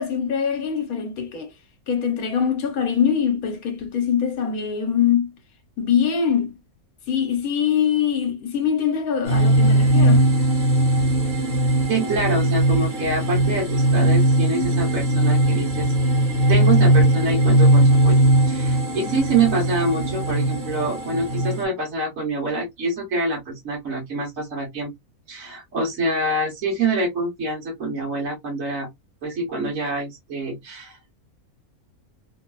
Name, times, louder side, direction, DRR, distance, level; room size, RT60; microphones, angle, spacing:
voice 1, 0.0-1.5 1.9-5.3 5.8-6.6 7.1-10.3, left 8 dB, 75° left, 1.3 m, -23 dB
sound 1, 9.2-21.6, right 1 dB, 45° right, 1.4 m, -19 dB
voice 2, 11.9-15.9 16.5-18.2 18.5-24.9 25.3-28.9 29.2-31.0, right 2 dB, 65° right, 1.3 m, -25 dB
3.1 x 2.2 x 2.3 m
omnidirectional pair, 1.6 m